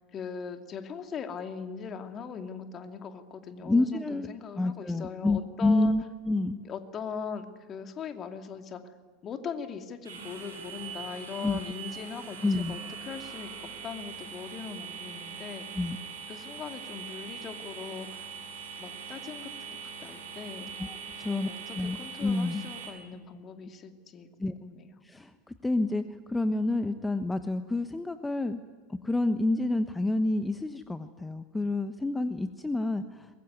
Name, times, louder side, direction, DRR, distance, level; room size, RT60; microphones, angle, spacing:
voice 1, 0.1-5.9 6.6-8.8 9.2-15.6 16.3-18.3 18.8-20.7 21.3-24.9, left 6 dB, 35° left, 6 dB, 2.6 m, -40 dB
voice 2, 3.6-4.3 4.5-6.6 11.4-11.6 12.4-12.8 15.7-16.0 20.8-21.5 21.7-22.6 24.4-24.5 25.0-25.3 25.6-26.0 26.3-28.6 28.9-33.3, left 2 dB, 10° left, 10 dB, 1.1 m, -28 dB
sound 1, 10.0-22.9, right 6 dB, 75° right, 7.9 m, -42 dB
23.5 x 22.0 x 9.5 m, 1.4 s
figure-of-eight pair, 80°, 0 cm